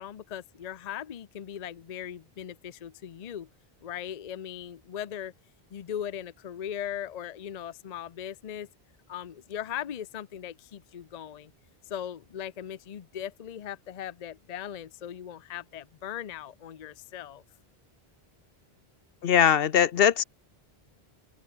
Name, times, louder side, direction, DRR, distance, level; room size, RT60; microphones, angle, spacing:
voice 1, 0.0-3.5 3.8-5.3 5.7-8.7 9.1-11.5 11.9-17.4, left 10 dB, 45° left, 0.6 m, -39 dB
voice 2, 19.2-20.2, left 8 dB, 70° left, 0.9 m, -21 dB
open air
omnidirectional pair, 1.0 m